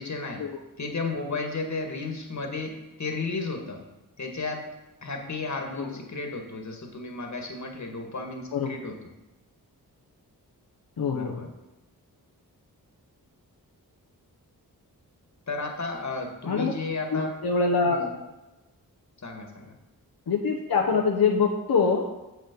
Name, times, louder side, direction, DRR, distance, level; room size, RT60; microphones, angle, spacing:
voice 1, 0.0-0.4 0.8-3.8 4.2-4.6 5.0-8.9 11.1-11.5 15.5-17.3 17.9-18.1 19.2-19.7, left 3 dB, 50° left, 2 dB, 1.8 m, -33 dB
voice 2, 11.0-11.5 16.5-16.7 17.1-18.1 20.3-22.1, left 5 dB, 75° left, -1 dB, 1.1 m, -24 dB
7.6 x 7.1 x 5.3 m, 1.0 s
cardioid pair, 65°, 37 cm